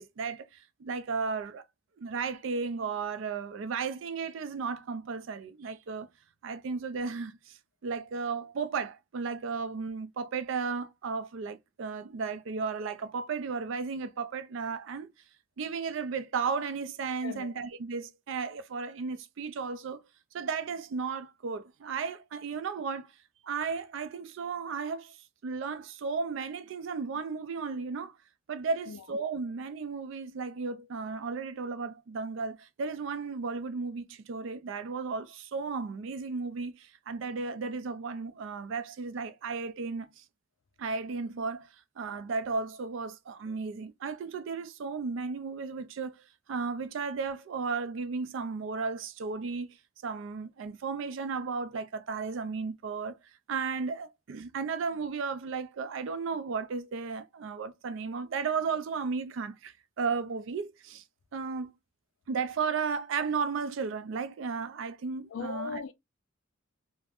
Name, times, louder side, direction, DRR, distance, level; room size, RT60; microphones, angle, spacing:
voice 1, 0.0-1.6 2.0-6.1 6.4-15.1 15.6-20.1 20.3-23.1 23.4-25.2 25.4-28.1 28.5-40.2 40.8-41.7 42.0-46.2 46.5-49.7 50.0-53.2 53.5-61.0 61.3-61.7 62.3-65.8, right 5 dB, 65° right, 0.4 m, -34 dB
voice 2, 17.2-17.5 28.9-29.0 65.3-65.9, left 5 dB, 70° left, 0.4 m, -38 dB
2.4 x 2.0 x 3.4 m
head